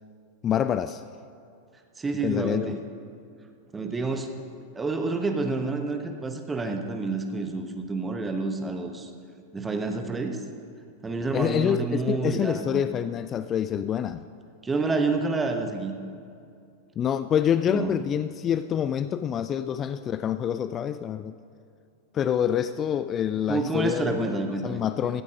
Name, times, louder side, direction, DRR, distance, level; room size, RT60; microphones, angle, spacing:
voice 1, 0.4-1.0 2.2-2.8 11.3-14.2 17.0-21.3 22.1-25.2, left 9 dB, 25° left, 12 dB, 0.3 m, -26 dB
voice 2, 2.0-2.8 3.7-4.3 4.7-9.1 9.5-10.4 11.0-12.8 14.6-16.0 17.7-18.0 23.5-24.8, right 3 dB, 15° right, 5 dB, 1.1 m, -28 dB
15.0 x 8.3 x 5.2 m, 2.4 s
figure-of-eight pair, 90°, 0 cm